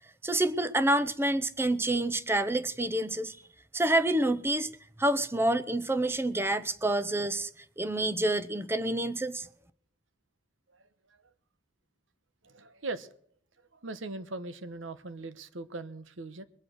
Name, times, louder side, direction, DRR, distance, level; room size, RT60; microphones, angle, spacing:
voice 1, 0.2-3.4 3.7-4.7 5.0-7.5 7.8-9.5, right 1 dB, 10° right, 0.7 m, -28 dB
voice 2, 10.7-11.3 12.4-13.1 13.7-16.5, right 2 dB, 85° right, 1.1 m, -40 dB
21.5 x 7.6 x 6.4 m
head